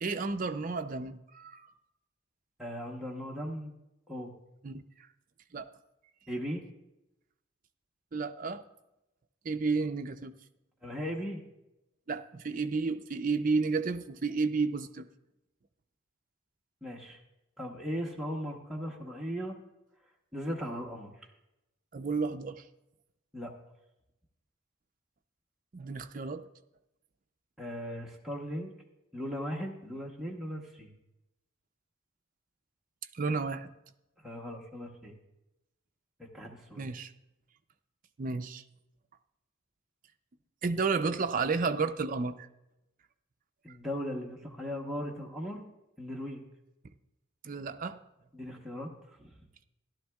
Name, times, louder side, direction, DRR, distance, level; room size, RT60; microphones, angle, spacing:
voice 1, 0.0-1.7 4.6-4.8 5.5-5.7 8.1-8.6 9.4-10.4 12.1-15.1 21.9-22.6 25.7-26.5 33.1-33.7 36.8-37.1 38.2-38.6 40.6-42.3 47.4-48.0, right 4 dB, 40° right, 8 dB, 0.4 m, -31 dB
voice 2, 2.6-3.7 4.1-4.3 6.3-6.7 10.8-11.4 16.8-17.2 17.6-19.5 20.3-21.1 23.3-23.5 27.6-28.7 29.1-30.9 34.2-35.2 36.2-36.9 43.6-45.6 46.0-46.4 48.3-48.9 49.2-49.4, equal, ahead, -3 dB, 0.9 m, -38 dB
14.0 x 11.5 x 2.3 m, 0.91 s
head